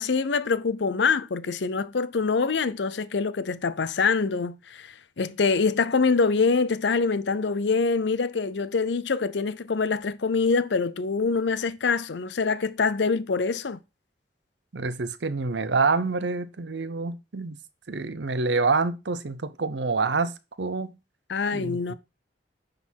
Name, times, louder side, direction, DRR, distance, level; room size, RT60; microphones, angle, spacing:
voice 1, 0.0-13.8 21.3-21.9, left 4 dB, 75° left, 0.6 m, -25 dB
voice 2, 14.7-17.6 17.9-20.3 20.6-20.9 21.5-21.9, right 4 dB, 75° right, 0.7 m, -27 dB
9.6 x 4.0 x 4.5 m
head